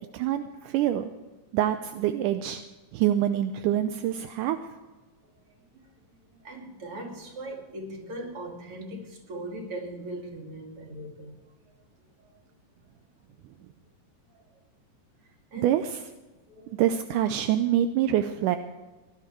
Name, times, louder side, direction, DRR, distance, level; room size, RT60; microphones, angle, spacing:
voice 1, 0.1-1.1 1.5-2.6 2.9-4.6 15.6-16.0 16.8-18.6, right 11 dB, 80° right, 9 dB, 2.1 m, -25 dB
voice 2, 5.7-11.7 12.2-12.3 14.3-14.4 15.5-15.8 16.5-16.8, right 1 dB, 45° right, 1 dB, 3.2 m, -40 dB
18.5 x 11.5 x 4.6 m, 1.2 s
omnidirectional pair, 3.9 m